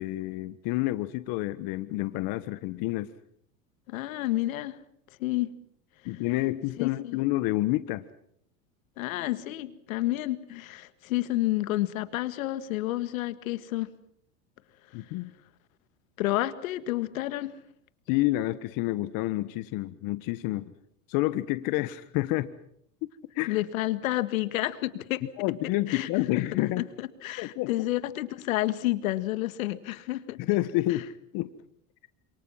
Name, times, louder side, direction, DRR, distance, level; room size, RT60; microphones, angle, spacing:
voice 1, 0.0-3.1 6.0-8.0 14.9-15.3 18.1-20.7 21.1-22.5 23.0-23.1 23.3-23.6 25.4-26.8 27.4-27.7 30.4-31.1 31.3-31.5, left 17 dB, 55° left, 1.4 m, -29 dB
voice 2, 3.9-4.8 5.2-5.5 6.8-7.2 9.0-13.9 16.2-17.5 23.5-25.2 25.9-26.4 26.8-30.4, left 16 dB, 80° left, 1.8 m, -30 dB
28.5 x 27.0 x 5.8 m
supercardioid pair, 115°, 40 cm